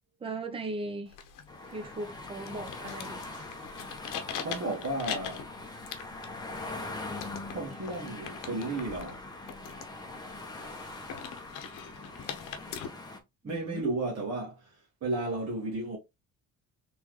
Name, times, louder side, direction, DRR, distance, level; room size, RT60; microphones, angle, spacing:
voice 1, 0.2-1.2 1.7-3.2 13.4-13.9, right 2 dB, 15° right, 0.8 m, -38 dB
sound 1, 1.1-12.9, left 8 dB, 75° left, 0.9 m, -43 dB
sound 2, 1.5-13.2, left 2 dB, 10° left, 1.0 m, -42 dB
voice 2, 4.4-5.5 7.5-9.2 13.4-16.0, right 2 dB, 50° right, 1.7 m, -33 dB
4.1 x 3.4 x 3.1 m
cardioid pair, 125°, 32 cm